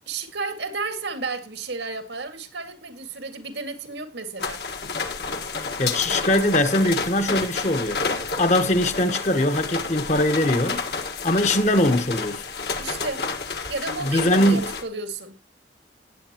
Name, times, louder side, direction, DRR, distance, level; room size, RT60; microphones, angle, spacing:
voice 1, 0.1-4.6 12.8-13.3 13.7-15.4, right 3 dB, 85° right, 2.1 m, -32 dB
sound 1, 4.4-14.8, left 4 dB, 65° left, 1.7 m, -30 dB
voice 2, 5.8-8.0 8.4-10.8 11.2-12.4 14.0-14.6, left 1 dB, 40° left, 1.1 m, -21 dB
18.0 x 8.4 x 3.0 m
head